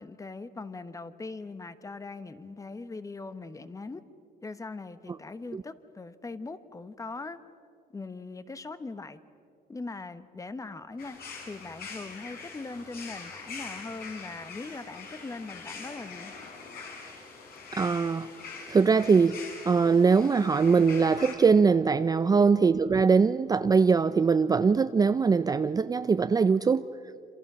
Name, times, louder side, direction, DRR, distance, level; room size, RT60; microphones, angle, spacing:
voice 1, 0.0-4.0 4.4-7.4 7.9-9.2 9.7-11.2 11.4-16.3 22.4-22.5, left 3 dB, 20° left, 12 dB, 1.1 m, -40 dB
sound 1, 11.0-21.4, left 4 dB, 60° left, 6.1 m, -43 dB
voice 2, 17.8-18.3 18.7-19.4 19.7-26.9, right 5 dB, 20° right, 12 dB, 0.5 m, -22 dB
27.0 x 26.5 x 6.2 m, 2.5 s
cardioid pair, 110°, 17 cm